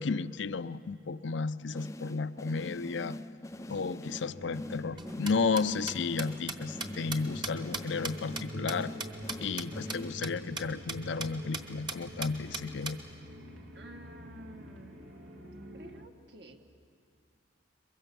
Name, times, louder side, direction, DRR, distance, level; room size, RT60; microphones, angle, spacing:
voice 1, 0.0-3.2 3.7-8.9 9.4-13.0, left 4 dB, 70° left, 15 dB, 0.5 m, -33 dB
sound 1, 1.7-10.5, left 1 dB, 15° left, 0.5 m, -44 dB
sound 2, 4.2-16.1, equal, 85° right, 2.2 m, -46 dB
sound 3, 5.0-9.6 9.9-10.0 10.2-10.3 10.6-10.7 10.9-11.3 11.5-11.6 11.9-12.9, right 3 dB, 25° right, 1.1 m, -37 dB
voice 2, 13.7-15.0 15.7-16.6, right 2 dB, 60° right, 5 dB, 1.5 m, -51 dB
22.5 x 22.5 x 6.9 m, 2.4 s
head